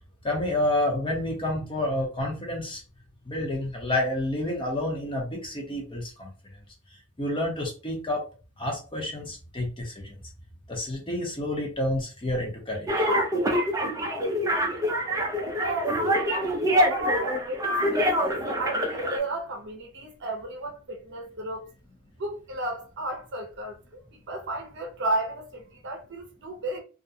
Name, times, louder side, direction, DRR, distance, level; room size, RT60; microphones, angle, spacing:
voice 1, 0.2-2.8 3.3-6.3 7.2-8.2 8.6-10.3 10.7-13.1, left 1 dB, 25° left, 0.8 m, -29 dB
sound 1, 12.9-19.2, equal, 15° right, 0.4 m, -25 dB
voice 2, 15.6-21.7 22.2-26.8, right 1 dB, 55° right, 0.7 m, -34 dB
2.4 x 2.2 x 2.7 m
head